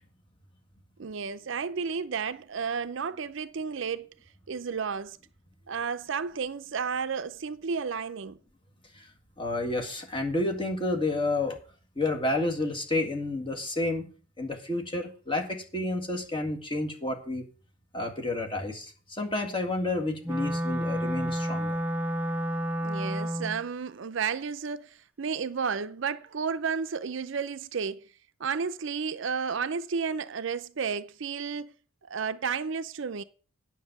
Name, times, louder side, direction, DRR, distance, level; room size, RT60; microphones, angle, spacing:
voice 1, 1.0-4.1 4.5-5.2 5.7-8.4 22.8-28.1 28.4-31.7 32.1-33.2, right 6 dB, 60° right, 0.5 m, -32 dB
voice 2, 9.4-11.6 12.0-14.1 14.4-17.4 17.9-21.8, left 2 dB, 25° left, 1.9 m, -30 dB
Wind instrument woodwind instrument, 20.2-23.6, equal, 10° right, 0.6 m, -30 dB
9.3 x 6.1 x 8.2 m
head